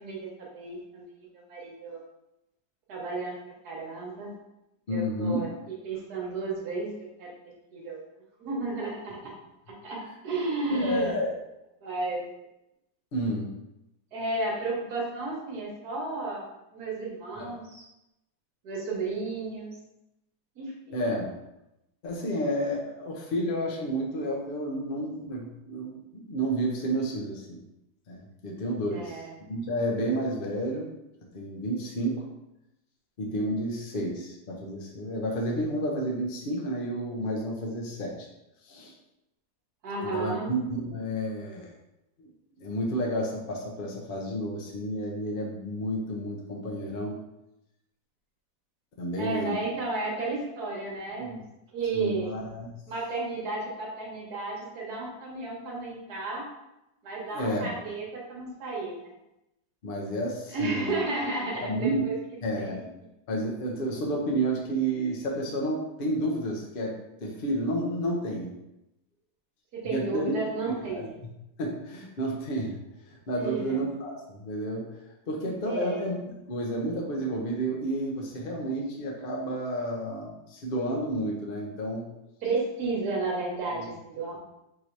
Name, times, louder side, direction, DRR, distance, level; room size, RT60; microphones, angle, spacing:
voice 1, 0.0-2.0 2.9-3.4 3.6-4.3 4.9-5.5 5.8-6.9 7.2-7.3 7.7-8.0 8.4-9.2 9.8-10.0 10.2-11.1 11.8-12.3 14.1-16.4 16.7-17.8 18.6-19.7 20.6-21.0 28.9-29.3 39.8-40.5 49.2-51.4 51.7-52.3 52.9-56.5 57.0-59.0 60.5-62.1 62.6-62.8 69.7-71.1 73.4-73.7 75.6-76.0 82.4-84.4, right 3 dB, 60° right, -3 dB, 1.6 m, -32 dB
voice 2, 4.9-5.5 10.7-11.3 13.1-13.5 17.4-17.5 20.9-21.4 22.0-27.6 28.1-29.2 29.5-30.9 31.3-32.3 33.2-38.3 38.6-38.9 40.1-41.7 42.2-42.3 42.6-47.2 49.0-49.6 51.2-51.4 51.9-52.8 57.3-57.7 59.8-61.0 61.5-62.1 62.4-62.9 63.3-68.5 69.8-70.4 70.6-71.3 71.6-72.8 73.1-74.9 75.3-76.2 76.5-82.1 83.7-83.9, right 1 dB, 60° left, -1 dB, 0.5 m, -31 dB
3.8 x 2.7 x 4.5 m, 0.89 s
omnidirectional pair, 2.0 m